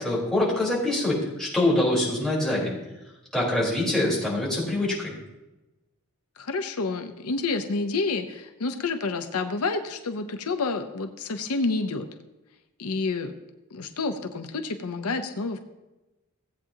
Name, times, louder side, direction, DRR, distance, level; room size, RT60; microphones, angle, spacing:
voice 1, 0.0-2.8 3.3-5.1, left 1 dB, 5° left, -7 dB, 3.9 m, -24 dB
voice 2, 6.4-12.1 12.8-13.3 13.7-15.6, left 3 dB, 80° left, 8 dB, 0.7 m, -29 dB
16.5 x 8.5 x 2.8 m, 1.0 s
head